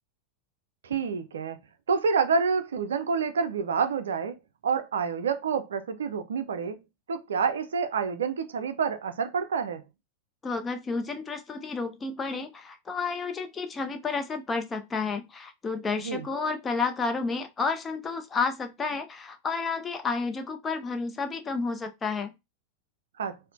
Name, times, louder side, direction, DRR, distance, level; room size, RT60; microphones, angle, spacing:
voice 1, 0.8-1.6 1.9-4.4 4.6-6.8 7.1-9.8 16.0-16.3 23.2-23.4, right 5 dB, 65° right, 0.4 m, -28 dB
voice 2, 10.4-22.3, left 4 dB, 20° left, 0.4 m, -31 dB
4.2 x 2.0 x 2.4 m
figure-of-eight pair, 90°, 0 cm